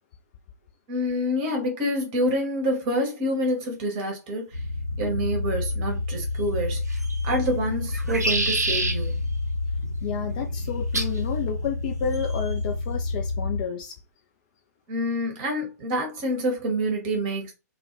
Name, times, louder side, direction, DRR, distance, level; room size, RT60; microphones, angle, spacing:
voice 1, 0.9-4.6 5.0-9.3 14.9-17.5, equal, 25° right, 0.8 m, -27 dB
sound 1, 4.5-13.6, left 3 dB, 75° left, 0.9 m, -29 dB
sound 2, 6.9-7.4 7.9-9.0 10.9-11.2 12.1-12.5, right 2 dB, 70° right, 0.6 m, -27 dB
voice 2, 10.0-14.0, left 7 dB, 30° left, 0.3 m, -31 dB
2.3 x 2.1 x 2.9 m
figure-of-eight pair, 120°, 9 cm